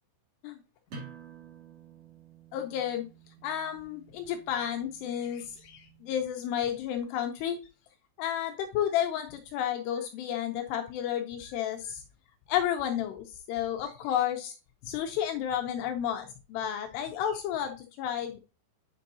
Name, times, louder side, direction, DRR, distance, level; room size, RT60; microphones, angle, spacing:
sound 1, 0.9-6.3, right 5 dB, 45° right, 2.3 m, -51 dB
voice 1, 2.5-3.0 3.4-7.6 8.2-12.0 12.5-14.5 14.8-18.4, left 10 dB, 85° left, 5 dB, 2.5 m, -31 dB
9.0 x 5.3 x 2.8 m, 0.30 s
omnidirectional pair, 5.4 m